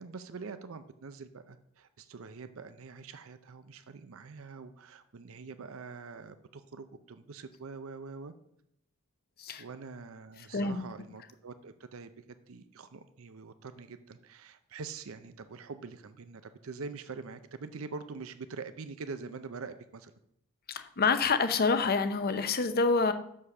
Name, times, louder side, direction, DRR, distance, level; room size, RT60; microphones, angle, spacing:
voice 1, 0.0-8.3 9.6-12.1 12.5-20.1, right 4 dB, 70° right, 10 dB, 0.6 m, -44 dB
voice 2, 20.7-23.1, left 4 dB, 45° left, 10 dB, 0.7 m, -27 dB
6.4 x 5.5 x 6.8 m, 0.74 s
head